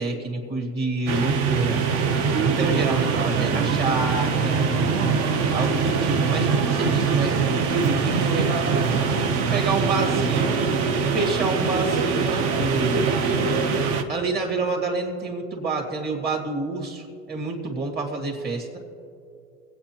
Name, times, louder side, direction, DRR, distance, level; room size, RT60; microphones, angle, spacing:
voice 1, 0.0-1.8 2.4-4.9 5.5-9.0 9.5-10.6 11.1-13.1 14.1-18.8, right 3 dB, 30° right, 1 dB, 2.1 m, -28 dB
sound 1, 1.1-14.0, right 5 dB, 45° right, 0.9 m, -23 dB
22.5 x 8.5 x 3.0 m, 2.4 s
supercardioid pair, 135°, 32 cm